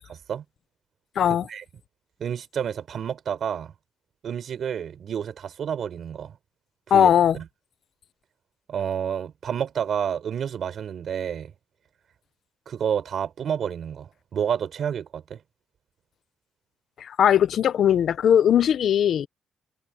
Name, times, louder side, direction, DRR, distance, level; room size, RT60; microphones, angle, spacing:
voice 1, 1.2-1.5 6.9-7.4 17.0-19.3, left 9 dB, 60° left, 0.8 m, -19 dB
voice 2, 2.2-3.7 4.2-6.3 6.9-7.4 8.7-11.5 12.7-15.4, right 8 dB, 55° right, 5.0 m, -29 dB
cardioid pair, 130°, 0 cm